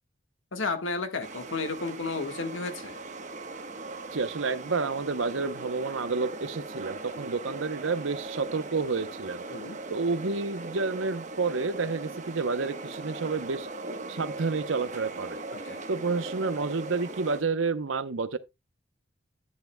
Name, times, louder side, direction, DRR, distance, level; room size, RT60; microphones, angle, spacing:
voice 1, 0.5-3.0 9.5-9.8 15.5-15.8, left 3 dB, 85° left, 1.4 m, -33 dB
sound 1, 1.2-17.4, right 3 dB, 40° right, 1.0 m, -39 dB
voice 2, 4.1-9.4 9.9-13.7 14.1-15.4 15.9-18.4, right 4 dB, 85° right, 0.8 m, -30 dB
10.5 x 9.4 x 2.2 m
head